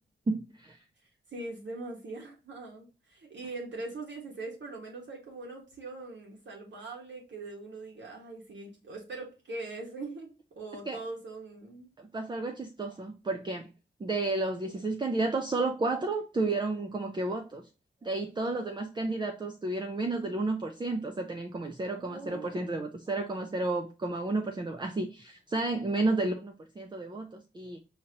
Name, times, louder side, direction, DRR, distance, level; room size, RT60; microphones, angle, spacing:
voice 1, 0.3-0.8 10.9-11.0 12.0-13.7 14.0-17.7 18.0-27.8, right 2 dB, 25° right, 4 dB, 0.4 m, -32 dB
voice 2, 1.3-10.3 10.5-11.9 21.9-22.5, right 2 dB, 70° right, -1 dB, 1.2 m, -41 dB
5.0 x 2.8 x 2.8 m, 0.32 s
wide cardioid pair, 130°, 19 cm